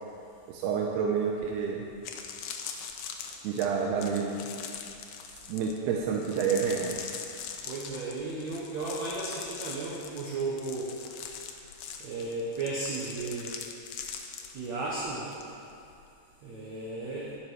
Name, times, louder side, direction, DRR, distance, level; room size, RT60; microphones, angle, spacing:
voice 1, 0.5-1.8 3.4-4.5 5.5-7.1, right 6 dB, 85° right, -1 dB, 2.8 m, -29 dB
sound 1, 1.4-1.5 1.9-15.4 15.7-16.0, left 7 dB, 85° left, 1.8 m, -42 dB
voice 2, 7.6-10.9 12.0-13.5 14.5-15.3 16.4-17.3, right 3 dB, 60° right, -5 dB, 1.9 m, -34 dB
12.0 x 10.5 x 4.7 m, 2.5 s
omnidirectional pair, 4.6 m